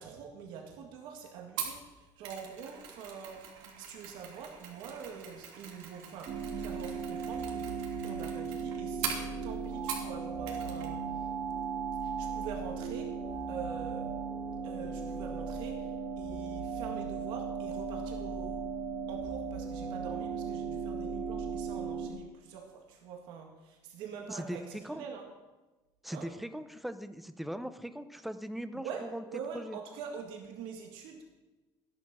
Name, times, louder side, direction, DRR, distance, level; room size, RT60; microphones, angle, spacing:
voice 1, 0.0-3.4 3.8-7.7 8.0-11.3 12.0-13.1 13.5-14.1 14.6-18.6 19.1-25.3 26.1-26.3 28.8-31.3, right 6 dB, 65° right, 2 dB, 2.0 m, -45 dB
Mechanisms, 1.6-10.2 10.5-10.9 11.2-11.3, right 7 dB, 85° right, 3.1 m, -42 dB
sound 1, 6.3-22.1, right 5 dB, 45° right, 1.8 m, -37 dB
voice 2, 24.3-25.0 26.0-29.2 29.5-29.8, equal, ahead, 10 dB, 0.6 m, -40 dB
14.0 x 10.5 x 6.2 m, 1.1 s
cardioid pair, 165°, 9 cm